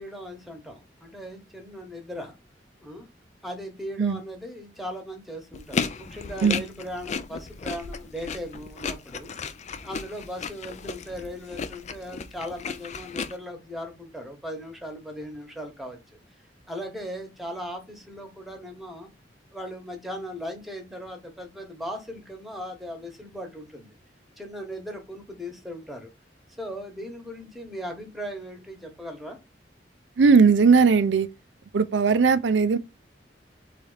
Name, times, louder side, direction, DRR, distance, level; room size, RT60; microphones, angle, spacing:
voice 1, 0.0-2.3 2.8-3.1 3.4-9.3 9.8-16.0 16.7-19.1 19.5-23.9 24.4-26.1 26.6-29.4, equal, ahead, 1.1 m, -38 dB
sound 1, 5.5-13.3, left 5 dB, 40° left, 0.4 m, -34 dB
voice 2, 30.2-31.3 31.7-32.8, right 5 dB, 75° right, 0.5 m, -18 dB
4.0 x 3.3 x 3.9 m
head